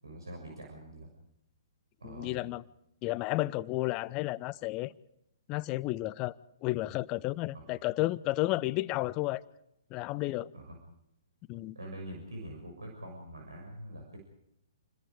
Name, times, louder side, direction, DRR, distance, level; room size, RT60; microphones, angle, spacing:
voice 1, 0.0-1.1 2.0-2.5 7.5-7.7 10.5-10.8 11.7-14.2, right 1 dB, 75° right, 6.5 m, -44 dB
voice 2, 2.0-2.6 3.0-4.9 5.5-6.4 6.6-9.4 9.9-10.5 11.5-11.8, left 18 dB, 25° left, 0.8 m, -32 dB
29.0 x 21.0 x 5.0 m
figure-of-eight pair, 125°, 2 cm